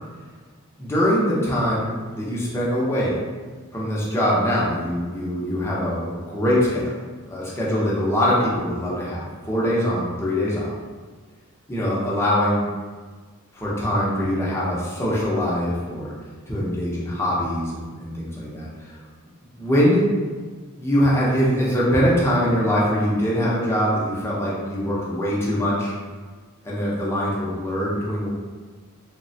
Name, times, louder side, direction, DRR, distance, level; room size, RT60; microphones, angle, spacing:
voice 1, 0.8-3.2 3.7-6.9 7.3-10.7 11.7-12.7 13.5-16.1 16.5-19.0 19.6-20.1 20.8-25.9 26.6-28.3, equal, 10° left, -7 dB, 0.6 m, -23 dB
2.9 x 2.1 x 2.6 m, 1.4 s
head